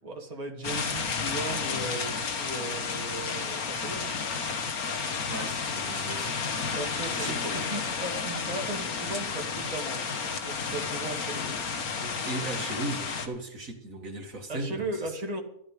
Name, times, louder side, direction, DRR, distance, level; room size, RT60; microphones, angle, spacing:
voice 1, 0.0-4.1 6.7-11.6 14.5-15.4, right 2 dB, 25° right, 1 dB, 2.1 m, -37 dB
sound 1, 0.6-13.3, left 5 dB, 80° left, 1.9 m, -32 dB
voice 2, 5.3-6.4 7.2-7.4 12.0-15.1, right 2 dB, 65° right, 3 dB, 2.4 m, -37 dB
14.0 x 12.5 x 5.1 m, 0.73 s
omnidirectional pair, 1.5 m